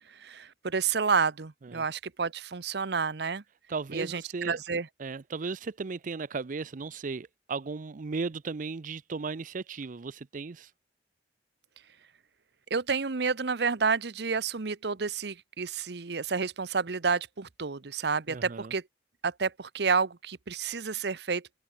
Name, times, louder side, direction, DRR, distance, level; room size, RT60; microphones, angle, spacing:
voice 1, 0.2-3.4 3.9-4.9 12.7-18.8 19.2-21.6, right 5 dB, 65° right, 0.9 m, -30 dB
voice 2, 3.7-4.6 5.0-10.7 18.3-18.7, right 4 dB, 45° right, 0.5 m, -36 dB
open air
head